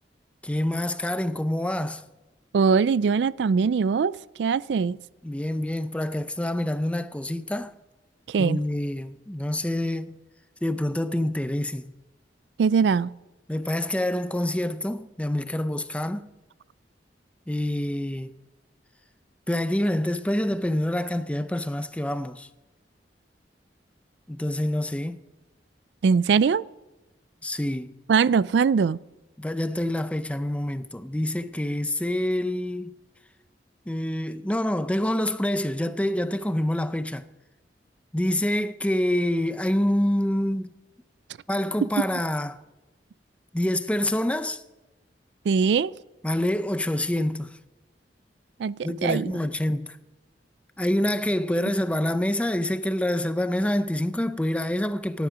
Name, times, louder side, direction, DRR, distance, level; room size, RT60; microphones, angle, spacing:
voice 1, 0.4-2.0 5.2-7.7 8.4-10.2 10.6-11.9 13.5-16.3 17.5-18.3 19.5-22.5 24.3-25.2 27.4-27.9 29.4-32.9 33.9-37.3 38.1-40.7 41.5-42.6 43.5-44.6 46.2-47.6 48.8-50.0 50.8-55.3, left 1 dB, 5° left, 0.5 m, -26 dB
voice 2, 2.5-5.0 8.3-8.6 12.6-13.1 26.0-26.6 28.1-29.0 45.5-45.9 48.6-48.8 49.0-49.3, right 5 dB, 75° right, 0.4 m, -21 dB
17.5 x 10.5 x 5.1 m
head